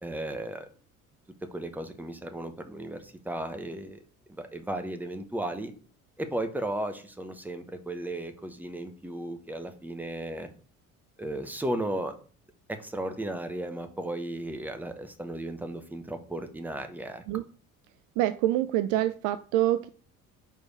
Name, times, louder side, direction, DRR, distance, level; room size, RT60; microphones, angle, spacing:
voice 1, 0.0-0.7 1.5-4.0 4.3-5.7 6.2-10.5 11.2-12.2 12.7-17.2, right 1 dB, 5° right, 7 dB, 1.0 m, -35 dB
voice 2, 18.2-19.9, right 14 dB, 50° right, 12 dB, 0.4 m, -26 dB
4.7 x 4.6 x 4.7 m, 0.41 s
figure-of-eight pair, 55°, 42 cm